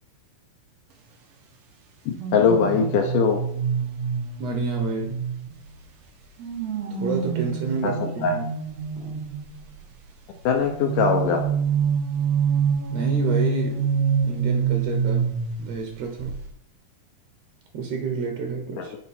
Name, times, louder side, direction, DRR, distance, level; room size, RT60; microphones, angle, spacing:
voice 1, 2.1-3.4 7.8-8.4 10.5-11.4, left 6 dB, 75° left, 3 dB, 2.0 m, -21 dB
sound 1, 2.2-5.8 6.4-9.7 10.7-15.9 16.2-16.5, right 6 dB, 85° right, 1.4 m, -26 dB
voice 2, 4.4-5.3 6.9-8.5 9.0-9.3 12.9-16.4 17.7-19.0, right 5 dB, 70° right, 2 dB, 1.6 m, -30 dB
10.5 x 4.2 x 4.3 m, 0.72 s
omnidirectional pair, 4.5 m